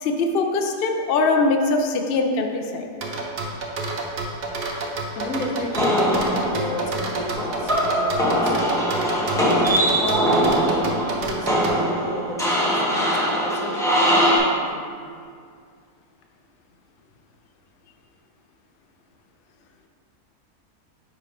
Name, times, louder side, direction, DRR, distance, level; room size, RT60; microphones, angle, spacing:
voice 1, 0.0-2.9, left 3 dB, 85° left, 3 dB, 0.5 m, -22 dB
sound 1, 3.0-11.8, right 3 dB, 50° right, 0.7 m, -29 dB
voice 2, 5.1-14.8, left 2 dB, 65° left, 2 dB, 1.1 m, -33 dB
sound 2, 5.7-14.4, equal, 5° left, 0.7 m, -22 dB
5.2 x 4.8 x 5.0 m, 2.1 s
omnidirectional pair, 1.7 m